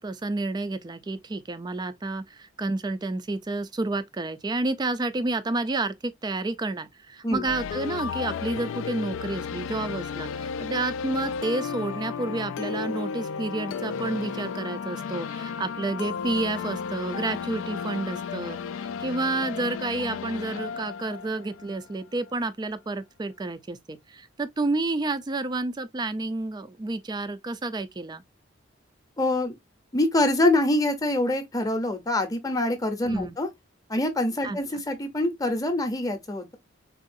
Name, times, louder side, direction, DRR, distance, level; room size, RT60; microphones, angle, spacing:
voice 1, 0.0-28.2 33.1-33.4 34.4-34.6, right 2 dB, 20° right, 0.3 m, -30 dB
sound 1, 7.5-22.3, left 6 dB, 85° left, 0.3 m, -33 dB
voice 2, 29.2-29.5 29.9-33.5 33.9-36.6, left 1 dB, 20° left, 0.7 m, -25 dB
3.7 x 2.4 x 2.5 m
head